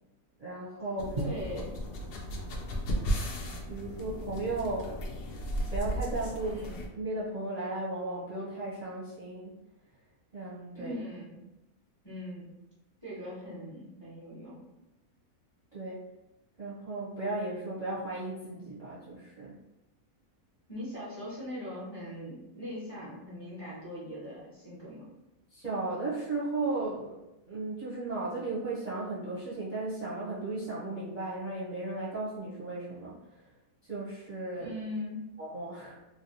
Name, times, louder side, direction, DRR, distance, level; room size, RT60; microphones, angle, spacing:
voice 1, 0.4-1.2 3.7-4.9 5.7-6.6 6.9-9.5 10.3-10.9 15.7-16.0 16.6-19.6 25.5-33.4 33.8-34.7 35.4-36.0, right 2 dB, 40° right, -8 dB, 0.6 m, -35 dB
sound 1, 1.0-6.9, equal, 80° left, 0.5 m, -35 dB
voice 2, 1.1-1.6 6.5-6.8 10.7-11.4 12.0-12.5 13.0-14.6 20.7-25.1 34.6-35.3, left 1 dB, 25° left, -8 dB, 0.6 m, -40 dB
3.1 x 2.4 x 2.7 m, 0.97 s
omnidirectional pair, 1.6 m